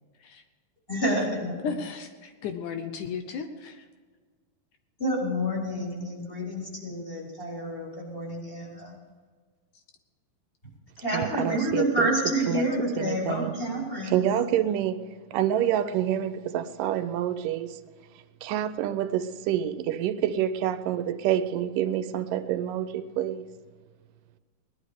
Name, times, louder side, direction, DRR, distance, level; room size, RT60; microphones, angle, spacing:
voice 1, 0.9-1.6 5.0-9.0 11.0-14.3, equal, 15° left, -4 dB, 4.4 m, -29 dB
voice 2, 1.6-3.9, left 6 dB, 75° left, 7 dB, 2.2 m, -35 dB
voice 3, 11.1-12.1 12.5-12.6 13.0-13.5 14.0-15.0 15.3-17.8 18.4-23.5, right 11 dB, 85° right, 11 dB, 2.3 m, -27 dB
19.0 x 11.5 x 5.0 m, 1.5 s
omnidirectional pair, 3.8 m